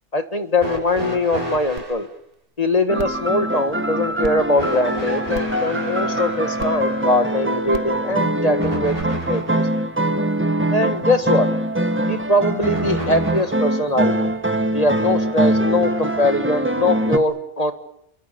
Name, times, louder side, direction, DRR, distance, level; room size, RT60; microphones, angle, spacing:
voice 1, 0.1-2.1 2.6-9.0 9.3-9.7 10.7-11.5 12.1-14.3 14.7-17.7, left 2 dB, 35° left, 9 dB, 1.8 m, -21 dB
sound 1, 0.6-2.0 4.6-9.7 12.6-13.7 14.9-15.0 16.0-16.1, equal, 30° right, 5.7 m, -32 dB
sound 2, 1.8-1.9 2.3-2.4 3.0-3.2 4.2-4.3 5.3-5.6 6.6-6.7 7.7-7.9 9.0-9.1, right 6 dB, 75° right, 1.5 m, -33 dB
sound 3, 2.9-17.2, right 1 dB, 10° right, 1.5 m, -23 dB
28.0 x 22.5 x 7.0 m, 0.75 s
omnidirectional pair, 1.2 m